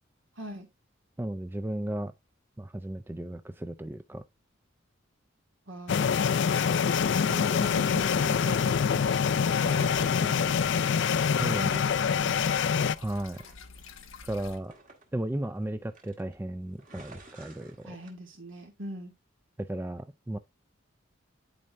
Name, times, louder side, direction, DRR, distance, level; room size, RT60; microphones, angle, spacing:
voice 1, 0.4-0.7 5.7-6.2 7.0-12.4 17.9-19.1, equal, 75° right, 2.6 m, -43 dB
voice 2, 1.2-2.1 2.6-4.2 11.4-11.7 13.0-13.4 14.2-14.7 15.1-18.0 19.6-20.4, right 1 dB, 10° right, 0.4 m, -35 dB
sound 1, 5.9-13.0, left 6 dB, 60° left, 0.4 m, -25 dB
sound 2, 6.9-14.6, left 5 dB, 85° left, 1.0 m, -48 dB
sound 3, 8.7-8.8 9.6-12.0 12.3-12.9 13.3-15.6 15.9-16.4 16.7-18.1, right 2 dB, 40° right, 1.7 m, -52 dB
11.0 x 4.6 x 2.6 m
head